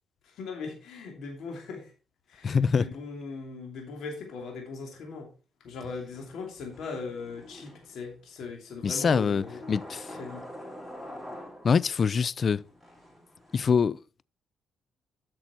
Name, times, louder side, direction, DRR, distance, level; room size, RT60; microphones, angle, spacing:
voice 1, 0.2-1.9 2.3-5.3 5.6-9.6 10.2-10.4, left 4 dB, 75° left, 2.6 m, -39 dB
voice 2, 2.4-2.9 8.8-10.1 11.6-12.6 13.5-14.0, left 6 dB, 45° left, 0.3 m, -24 dB
sound 1, 6.1-8.2 9.4-12.1 12.6-13.7, left 1 dB, 10° left, 5.8 m, -45 dB
8.8 x 6.2 x 4.3 m
cardioid pair, 90°, 0 cm